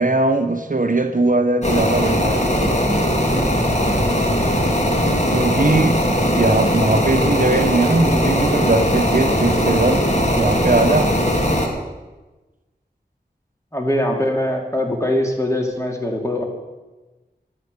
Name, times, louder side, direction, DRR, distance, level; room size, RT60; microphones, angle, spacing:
voice 1, 0.0-2.4 5.3-6.0 6.3-10.0 10.4-11.1, right 2 dB, 50° right, 6 dB, 0.9 m, -19 dB
sound 1, 1.6-11.7, equal, 40° left, 2.3 m, -19 dB
voice 2, 13.7-16.5, left 1 dB, 15° left, 1 dB, 2.7 m, -22 dB
13.5 x 9.7 x 6.7 m, 1.2 s
wide cardioid pair, 55°, 18 cm